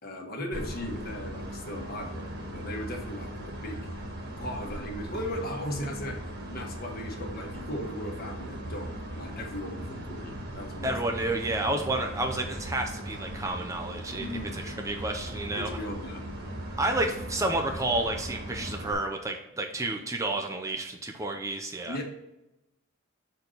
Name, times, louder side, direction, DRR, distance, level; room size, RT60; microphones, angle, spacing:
voice 1, 0.0-3.9 4.4-6.2 6.4-10.9 14.2-14.6 15.6-16.2 21.8-22.0, left 1 dB, 45° left, 1 dB, 1.4 m, -37 dB
sound 1, 0.5-18.9, right 1 dB, 55° right, 1.7 m, -38 dB
voice 2, 10.8-14.3 14.5-15.7 16.8-22.0, right 2 dB, 15° right, 3 dB, 0.5 m, -30 dB
6.6 x 4.5 x 4.0 m, 0.94 s
head